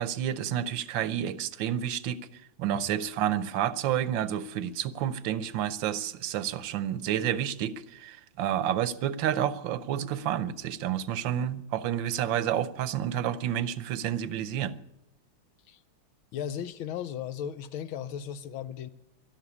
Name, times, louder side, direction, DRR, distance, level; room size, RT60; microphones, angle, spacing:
voice 1, 0.0-2.2 2.6-14.8, right 10 dB, 70° right, 1.3 m, -30 dB
voice 2, 16.3-18.9, left 9 dB, 75° left, 1.5 m, -36 dB
12.0 x 12.0 x 9.8 m
omnidirectional pair, 2.4 m